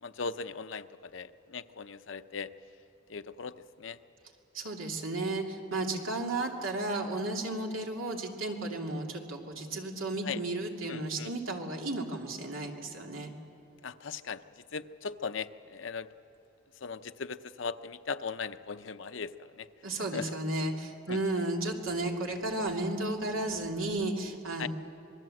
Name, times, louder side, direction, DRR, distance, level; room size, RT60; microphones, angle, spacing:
voice 1, 0.0-2.5 3.1-4.0 10.2-10.4 10.9-11.3 13.8-16.1 16.8-19.7 20.1-20.3 21.1-21.2 24.6-24.7, left 5 dB, 65° left, 10 dB, 0.7 m, -38 dB
voice 2, 4.5-13.3 19.8-24.7, right 2 dB, 85° right, 1 dB, 2.7 m, -33 dB
26.5 x 20.5 x 7.8 m, 2.9 s
head